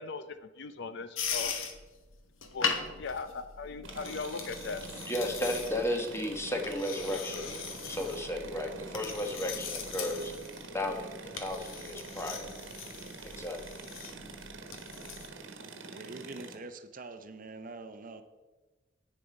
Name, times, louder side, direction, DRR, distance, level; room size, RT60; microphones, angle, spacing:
voice 1, 0.0-1.5 2.5-4.8, left 4 dB, 60° left, 11 dB, 0.6 m, -39 dB
sound 1, 1.2-15.3, left 6 dB, 85° left, 1.1 m, -40 dB
sound 2, 3.8-16.6, right 3 dB, 70° right, 1.2 m, -46 dB
voice 2, 5.1-7.5 7.9-10.3 10.7-12.5 13.2-13.8, left 1 dB, 15° left, 3 dB, 1.2 m, -34 dB
voice 3, 15.6-18.2, right 3 dB, 45° right, 9 dB, 0.7 m, -45 dB
9.2 x 7.1 x 5.2 m, 1.2 s
head